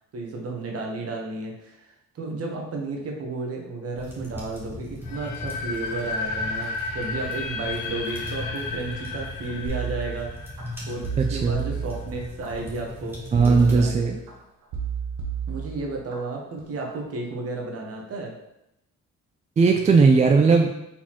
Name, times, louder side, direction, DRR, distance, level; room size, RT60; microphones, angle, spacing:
voice 1, 0.1-10.3 10.9-14.0 15.5-18.3, right 3 dB, 50° right, 0 dB, 1.1 m, -33 dB
sound 1, 3.9-13.9, left 1 dB, 5° right, 1.2 m, -38 dB
sound 2, 5.0-11.9, left 3 dB, 90° left, 0.6 m, -33 dB
sound 3, 9.7-10.6 11.0-12.5 13.3-14.3 14.7-16.2 16.6-17.0, right 7 dB, 85° right, 1.0 m, -32 dB
voice 2, 11.2-11.6 13.3-14.2 19.6-20.7, right 4 dB, 25° right, 3 dB, 0.4 m, -18 dB
4.3 x 4.0 x 3.0 m, 0.86 s
cardioid pair, 90°, 30 cm